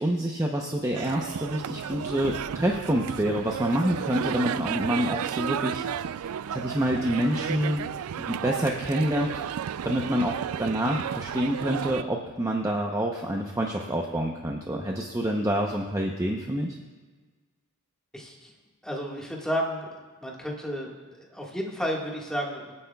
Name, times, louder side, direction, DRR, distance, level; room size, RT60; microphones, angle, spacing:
voice 1, 0.0-5.8 6.5-7.8 8.2-9.4 9.8-16.8, equal, 15° right, 0 dB, 0.7 m, -27 dB
sound 1, 0.9-12.0, right 8 dB, 70° right, 0.3 m, -33 dB
voice 2, 18.1-18.5 18.8-19.9 20.2-22.7, equal, 5° left, -2 dB, 1.7 m, -32 dB
25.0 x 9.8 x 2.3 m, 1.4 s
head